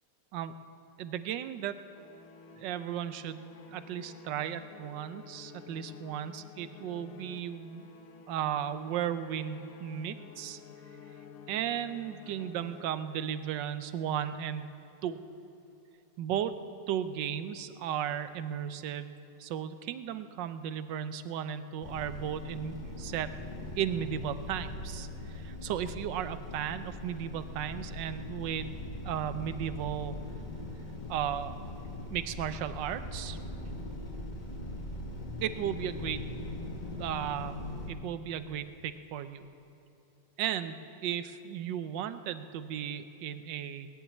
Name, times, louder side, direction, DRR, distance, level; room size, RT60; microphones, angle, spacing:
voice 1, 1.0-1.8 2.6-7.9 8.3-10.6 11.5-14.7 15.0-15.2 16.2-16.5 16.9-19.1 19.4-23.4 23.7-28.8 29.0-30.2 31.1-31.5 32.1-33.4 35.4-36.2 37.0-39.4 40.4-43.9, right 9 dB, 80° right, 12 dB, 1.3 m, -35 dB
sound 1, 1.9-13.4, left 5 dB, 60° left, 1.1 m, -51 dB
sound 2, 21.8-37.9, left 1 dB, 25° left, 1.4 m, -41 dB
19.0 x 7.1 x 9.3 m, 2.8 s
omnidirectional pair, 2.0 m